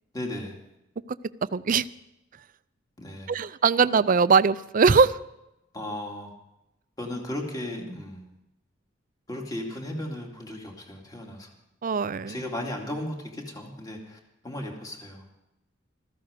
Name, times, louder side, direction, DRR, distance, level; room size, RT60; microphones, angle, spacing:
voice 1, 0.1-0.6 3.0-3.4 5.7-6.3 7.0-8.3 9.3-11.5 12.3-15.3, left 1 dB, 20° left, 0 dB, 2.4 m, -35 dB
voice 2, 1.5-1.9 3.3-5.2 11.8-12.4, right 5 dB, 45° right, 15 dB, 0.5 m, -21 dB
15.0 x 14.0 x 5.1 m, 0.89 s
head